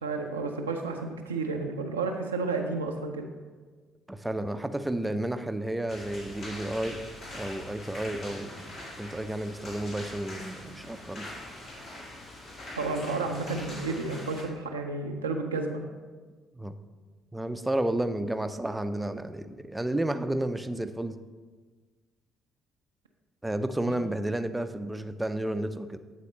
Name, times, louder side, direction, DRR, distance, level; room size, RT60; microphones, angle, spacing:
voice 1, 0.0-3.3 12.7-15.8, right 3 dB, 85° right, 3 dB, 0.4 m, -31 dB
voice 2, 4.1-7.0 7.3-8.7 9.0-11.3 16.5-16.8 17.3-21.2 23.4-26.0, right 1 dB, 10° right, 10 dB, 0.4 m, -31 dB
sound 1, 5.9-14.4, left 1 dB, 55° left, 2.1 m, -43 dB
8.4 x 4.1 x 4.3 m, 1.4 s
figure-of-eight pair, 50°, 0 cm